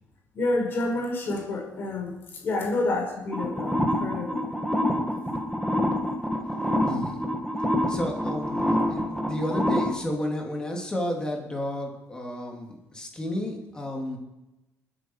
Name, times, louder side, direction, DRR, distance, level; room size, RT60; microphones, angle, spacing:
voice 1, 0.3-4.5, left 2 dB, 45° left, 1 dB, 5.2 m, -29 dB
sound 1, 3.3-9.9, left 1 dB, ahead, 1.6 m, -26 dB
voice 2, 6.8-7.2 7.9-14.2, left 1 dB, 15° left, 0 dB, 2.8 m, -32 dB
29.0 x 10.0 x 4.7 m, 1.0 s
cardioid pair, 165°, 5 cm